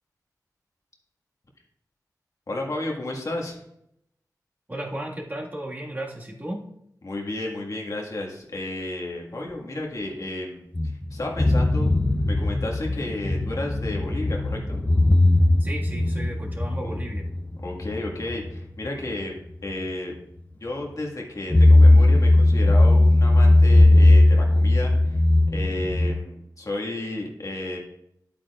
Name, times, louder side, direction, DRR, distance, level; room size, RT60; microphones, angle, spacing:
voice 1, 2.5-3.6 7.0-10.7 11.1-11.9 12.3-14.8 16.8-16.9 17.6-20.1 20.6-25.2 25.5-27.8, left 2 dB, 55° left, -1 dB, 1.8 m, -32 dB
voice 2, 4.7-6.6 15.6-17.2, right 1 dB, 30° right, -2 dB, 1.8 m, -34 dB
sound 1, 10.7-19.3 19.7-19.8 21.5-26.2, left 2 dB, 20° left, 0.6 m, -18 dB
11.0 x 8.8 x 2.4 m, 0.77 s
wide cardioid pair, 90°, 7 cm